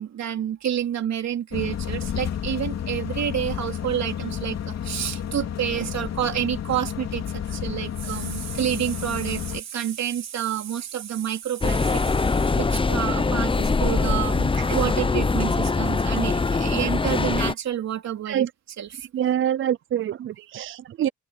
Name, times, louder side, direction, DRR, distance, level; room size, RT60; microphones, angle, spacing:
voice 1, 0.0-12.0 12.6-18.5 18.8-19.0, right 10 dB, 60° right, 3.1 m, -29 dB
sound 1, 1.5-9.6, left 9 dB, 60° left, 2.8 m, -31 dB
sound 2, 11.6-17.5, left 4 dB, 15° left, 0.8 m, -23 dB
voice 2, 19.1-21.1, right 10 dB, 45° right, 0.4 m, -25 dB
open air
cardioid pair, 90°, 30 cm